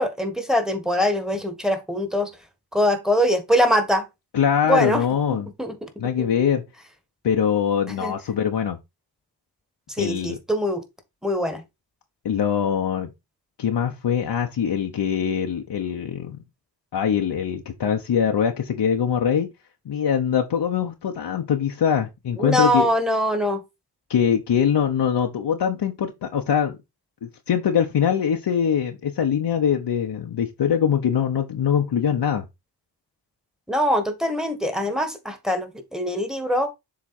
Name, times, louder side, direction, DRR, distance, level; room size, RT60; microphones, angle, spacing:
voice 1, 0.0-2.3 2.7-4.1 4.6-5.9 6.2-6.3 8.0-8.1 9.9-10.8 11.2-11.6 22.4-23.6 33.7-36.7, equal, ahead, 1.6 m, -23 dB
voice 2, 4.3-5.5 6.0-6.6 7.2-8.8 10.0-10.4 12.2-13.1 13.6-16.4 16.9-19.5 19.8-22.9 24.1-26.8 27.2-32.4, left 8 dB, 70° left, 0.9 m, -23 dB
7.3 x 3.3 x 4.3 m
cardioid pair, 55°, 43 cm